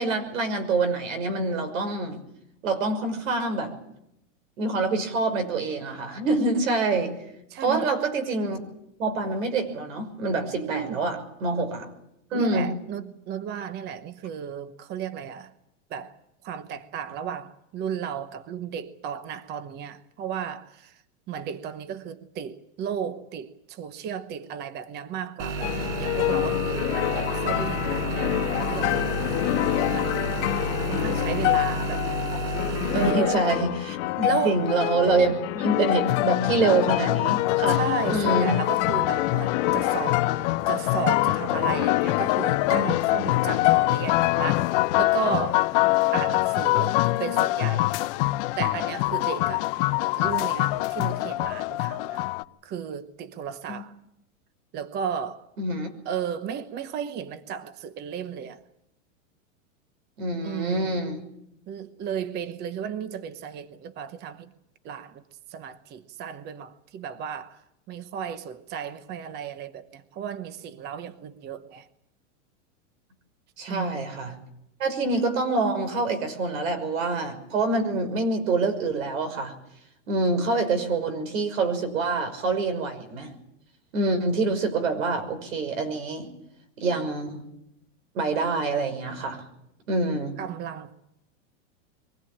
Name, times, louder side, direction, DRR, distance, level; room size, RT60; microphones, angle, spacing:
voice 1, 0.0-2.2 2.6-3.7 4.6-7.1 7.6-8.6 9.0-11.9 12.3-12.7 32.9-37.8 38.1-38.6 53.7-53.8 55.6-55.9 60.2-61.2 73.6-74.4 74.8-79.5 80.1-83.3 83.9-86.3 86.8-87.4 88.1-89.4 89.9-90.3, right 3 dB, 90° right, 6.1 m, -26 dB
voice 2, 7.5-7.9 10.5-11.1 12.3-15.5 15.9-16.2 16.4-21.0 21.3-25.7 26.0-29.3 29.5-30.3 30.7-32.1 32.9-33.4 34.2-34.6 37.7-40.3 40.7-45.6 46.1-48.0 48.6-49.7 50.2-52.3 52.6-53.9 54.7-55.5 56.0-58.6 60.4-61.0 61.7-64.5 64.8-65.2 65.5-71.9 73.7-74.0 90.4-90.9, right 7 dB, 25° right, 1.0 m, -34 dB
sound 1, 25.4-33.1, right 3 dB, 65° right, 4.9 m, -31 dB
sound 2, 25.6-45.0, left 15 dB, 60° left, 1.5 m, -27 dB
museum piano, 36.1-52.4, left 19 dB, 45° left, 0.8 m, -25 dB
23.5 x 16.5 x 8.8 m
supercardioid pair, 150°, 39 cm